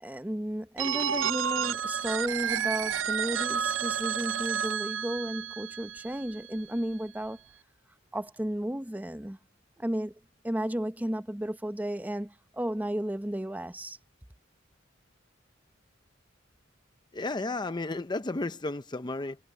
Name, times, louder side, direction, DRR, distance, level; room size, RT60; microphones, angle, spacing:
voice 1, 0.0-7.4 8.1-9.4 9.8-10.1 10.4-14.0, right 1 dB, 10° right, 0.8 m, -33 dB
Telephone, 0.8-6.6, right 8 dB, 80° right, 0.5 m, -31 dB
voice 2, 17.1-19.4, left 2 dB, 25° left, 0.6 m, -33 dB
head